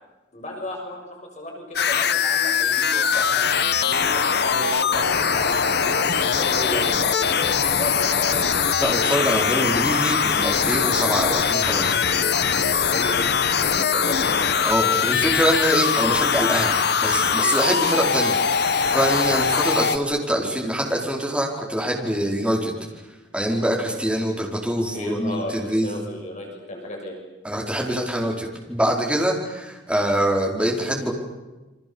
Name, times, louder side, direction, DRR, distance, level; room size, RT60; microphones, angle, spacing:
voice 1, 0.3-3.5 3.8-8.4 12.8-14.4 24.9-27.2, left 1 dB, 40° left, 0 dB, 6.4 m, -33 dB
sound 1, 1.8-20.0, left 6 dB, 60° left, 1.1 m, -21 dB
voice 2, 8.8-12.0 14.6-16.7 17.0-18.4 18.6-22.8 23.3-26.0 27.4-31.1, right 1 dB, 5° right, -1 dB, 4.8 m, -24 dB
29.0 x 25.0 x 7.2 m, 1.1 s
head